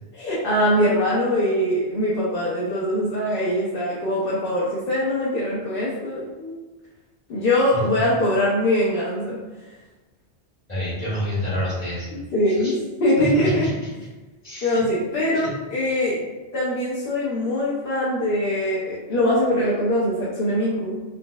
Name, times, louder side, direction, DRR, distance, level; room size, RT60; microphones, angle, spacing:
voice 1, 0.1-6.6 7.3-9.4 12.1-13.7 14.6-16.3 16.5-21.0, left 1 dB, 60° left, -6 dB, 0.9 m, -22 dB
voice 2, 10.7-12.2 12.6-12.7 13.2-13.9 14.4-14.8 15.3-15.5, equal, 35° left, -9 dB, 1.6 m, -28 dB
5.3 x 2.1 x 2.3 m, 1.2 s
omnidirectional pair, 1.1 m